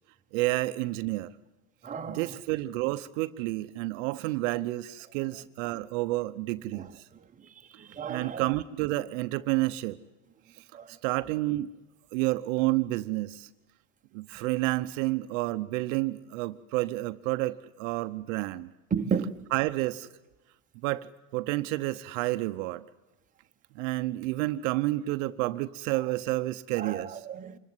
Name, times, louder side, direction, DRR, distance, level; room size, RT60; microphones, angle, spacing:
voice 1, 0.3-1.3 2.1-7.0 8.1-10.0 10.6-11.7 12.1-13.5 14.1-18.7 19.5-20.1 20.8-22.8 23.7-27.2, right 18 dB, 60° right, 0.8 m, -30 dB
voice 2, 1.8-2.3 6.7-6.9 7.8-8.5 10.7-10.9 18.9-19.4 26.7-27.6, right 6 dB, 20° right, 1.2 m, -33 dB
26.0 x 15.0 x 9.6 m
supercardioid pair, 110°, 41 cm